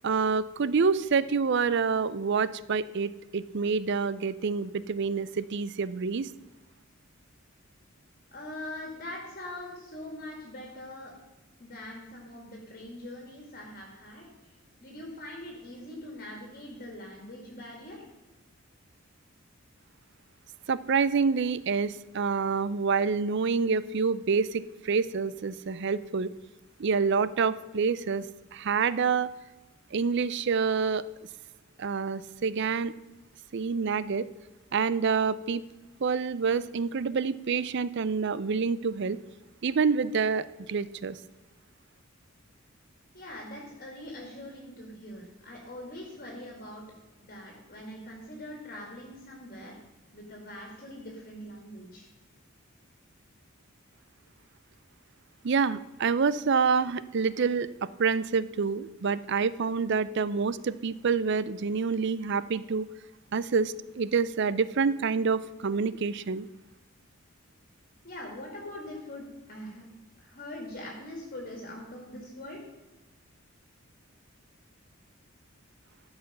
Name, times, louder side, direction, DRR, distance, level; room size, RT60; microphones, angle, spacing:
voice 1, 0.0-6.3 20.7-26.3 26.8-28.3 28.5-29.3 29.9-31.0 31.8-32.9 33.5-34.3 34.7-35.6 36.0-39.2 39.6-41.2 55.4-62.8 63.3-66.5, right 5 dB, 55° right, 17 dB, 0.5 m, -27 dB
voice 2, 8.3-11.1 11.6-14.3 14.8-18.0 43.1-46.8 47.2-49.8 50.1-52.1 68.0-69.9 70.2-72.6, left 1 dB, 45° left, 0 dB, 2.0 m, -42 dB
13.0 x 5.7 x 6.6 m, 1.1 s
head